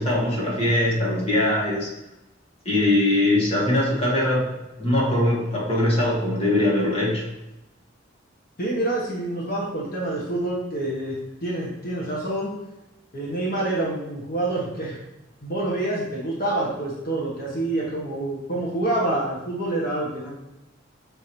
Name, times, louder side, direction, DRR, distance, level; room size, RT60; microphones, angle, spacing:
voice 1, 0.0-1.9 2.6-4.5 4.8-7.2, left 1 dB, 30° left, -5 dB, 1.6 m, -21 dB
voice 2, 8.6-11.1 11.4-12.5 13.1-15.0 15.4-20.3, right 2 dB, 50° left, -5 dB, 1.5 m, -27 dB
6.8 x 3.5 x 4.5 m, 0.95 s
head